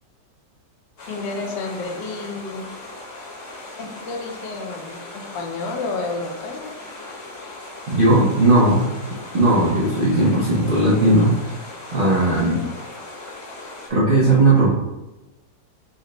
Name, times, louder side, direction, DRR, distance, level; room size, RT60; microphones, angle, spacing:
sound 1, 1.0-13.9, left 2 dB, 50° left, 1.0 m, -38 dB
voice 1, 1.1-2.7 3.8-6.7 12.4-12.7, left 3 dB, 85° left, 3 dB, 1.3 m, -30 dB
voice 2, 7.9-8.8 9.3-11.3 11.9-12.6 13.9-14.7, right 2 dB, 65° right, -6 dB, 0.5 m, -16 dB
4.0 x 2.1 x 3.8 m, 1.0 s
omnidirectional pair, 1.9 m